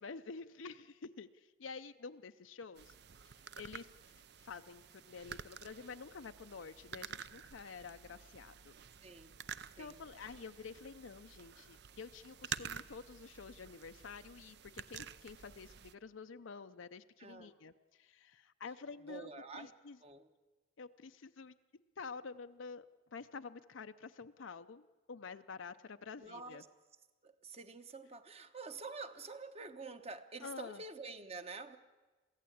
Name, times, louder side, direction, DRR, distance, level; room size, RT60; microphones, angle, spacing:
voice 1, 0.0-2.9 3.2-3.9 4.4-8.7 9.8-20.0 20.8-21.5 22.0-22.9 23.1-26.6 30.4-30.8, left 5 dB, 75° left, 9 dB, 0.6 m, -49 dB
sound 1, 2.8-15.9, right 8 dB, 55° right, 0.6 m, -50 dB
voice 2, 9.0-9.3 9.8-10.0 17.2-17.5 19.1-19.7 20.0-20.3 26.2-26.7 27.2-31.8, right 4 dB, 30° right, 9 dB, 1.0 m, -48 dB
23.0 x 15.5 x 8.6 m, 1.2 s
head